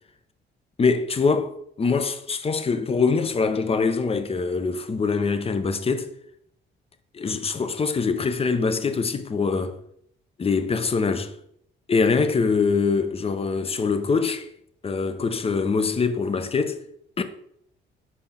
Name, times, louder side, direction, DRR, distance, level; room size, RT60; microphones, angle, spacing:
voice 1, 0.8-6.1 7.1-9.8 10.4-11.3 11.9-14.5 14.8-16.8 17.2-17.3, left 4 dB, 30° left, 0.7 m, -23 dB
5.1 x 4.2 x 5.7 m
cardioid pair, 90°, 20 cm